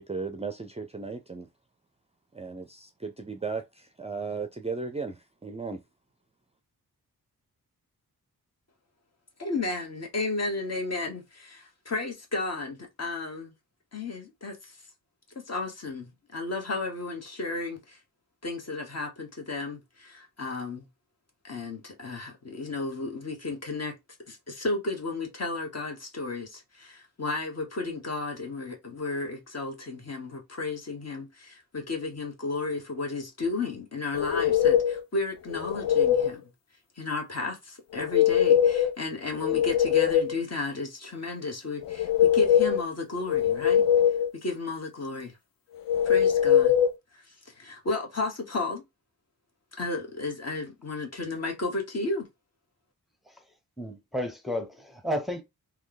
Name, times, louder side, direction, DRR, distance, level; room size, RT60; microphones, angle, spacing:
voice 1, 0.0-1.5 2.3-5.8, right 4 dB, 15° right, 0.5 m, -36 dB
voice 2, 9.4-13.5 13.9-14.7 15.3-18.0 18.4-20.9 21.4-23.9 24.3-36.4 37.0-43.8 44.3-45.3 46.0-46.8 47.1-48.8 49.7-52.3, left 3 dB, 45° left, 1.2 m, -33 dB
sound 1, 34.1-35.0 35.5-36.3 37.9-38.9 39.3-40.4 41.8-42.8 43.3-44.3 45.9-46.9, left 9 dB, 65° left, 0.6 m, -22 dB
voice 3, 53.8-55.4, equal, ahead, 0.9 m, -32 dB
3.1 x 2.3 x 3.9 m
cardioid pair, 50°, 37 cm